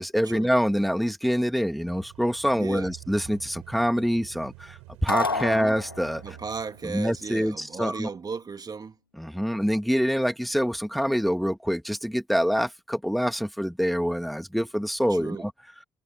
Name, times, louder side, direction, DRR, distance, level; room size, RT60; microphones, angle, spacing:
voice 1, 0.0-6.2 6.8-8.1 9.2-15.5, equal, ahead, 2.4 m, -26 dB
sound 1, 1.8-7.5, right 25 dB, 70° right, 5.0 m, -48 dB
voice 2, 2.6-2.9 5.3-5.8 6.2-9.0 15.1-15.5, right 5 dB, 35° right, 2.0 m, -35 dB
sound 2, 5.1-6.4, left 3 dB, 90° left, 1.5 m, -30 dB
figure-of-eight pair, 45°, 12 cm